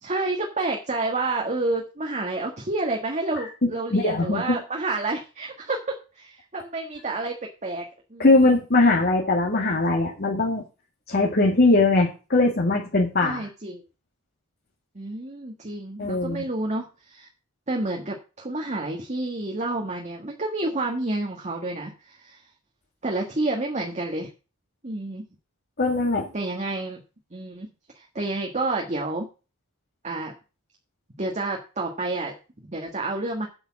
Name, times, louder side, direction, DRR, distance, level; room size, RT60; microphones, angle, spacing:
voice 1, 0.0-7.8 8.1-8.3 13.2-13.8 14.9-17.3 17.7-22.4 23.0-24.3 24.8-25.2 26.3-27.0 27.3-27.7 27.9-29.3 30.0-30.3 31.2-33.5, right 2 dB, 30° right, 1 dB, 1.5 m, -29 dB
voice 2, 3.6-4.6 8.2-10.6 11.1-13.5 16.0-16.4 25.8-26.3, left 2 dB, 45° left, 0 dB, 2.0 m, -21 dB
8.0 x 7.1 x 7.3 m, 0.32 s
head